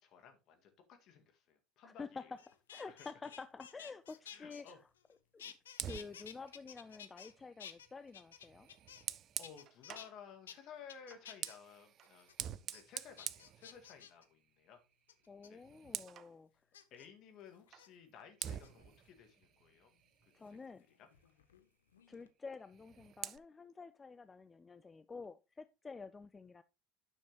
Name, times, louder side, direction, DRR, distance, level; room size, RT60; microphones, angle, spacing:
voice 1, 0.0-2.3 2.9-3.1 4.3-4.8 9.4-12.3 12.7-14.8 15.5-15.6 16.9-19.9 20.4-20.6 21.0-21.1, left 7 dB, 55° left, 1.9 m, -56 dB
voice 2, 1.8-4.8 5.3-5.5 5.8-8.7 15.3-16.5 20.3-20.8 22.1-26.6, left 4 dB, 25° left, 0.4 m, -49 dB
sound 1, 2.4-5.1 5.4-7.3 7.6-9.1 9.4-10.1 10.5-10.6 10.9-11.6 12.0-12.3 12.7-12.8 13.2-14.2 15.1-15.5 16.7-17.1 17.7-17.9 18.5-19.0 20.5-21.7 21.9-22.3, left 9 dB, 85° left, 0.7 m, -54 dB
Fire, 5.7-10.2 11.0-14.3 14.7-14.9 15.3-16.3 17.7-17.9 18.4-20.7 22.6-23.4, right 10 dB, 45° right, 0.5 m, -47 dB
9.6 x 6.5 x 3.0 m
hypercardioid pair, 75°, 0 cm